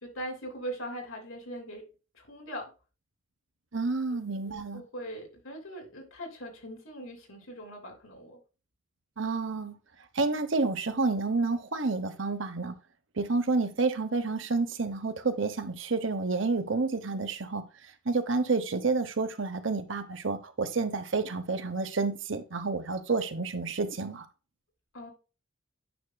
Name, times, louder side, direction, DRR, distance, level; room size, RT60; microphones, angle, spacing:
voice 1, 0.0-1.8 2.1-2.7 4.5-8.4 24.9-25.1, right 1 dB, 80° left, 3.0 m, -41 dB
voice 2, 3.7-4.8 9.2-9.8 10.1-12.8 13.2-17.6 18.0-24.3, right 3 dB, 70° right, 1.0 m, -29 dB
9.3 x 6.1 x 2.3 m
head